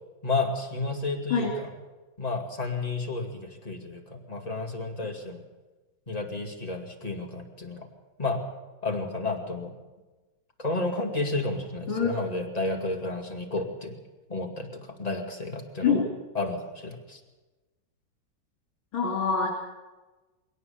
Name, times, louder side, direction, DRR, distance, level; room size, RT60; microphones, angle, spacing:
voice 1, 0.2-1.7 2.2-5.4 6.1-7.9 8.2-8.4 8.8-9.7 10.6-14.0 14.3-16.0 16.3-17.2, left 2 dB, 20° left, 2 dB, 2.3 m, -31 dB
voice 2, 18.9-19.5, left 5 dB, 80° left, -2 dB, 3.8 m, -24 dB
21.0 x 18.5 x 7.1 m, 1.2 s
omnidirectional pair, 2.2 m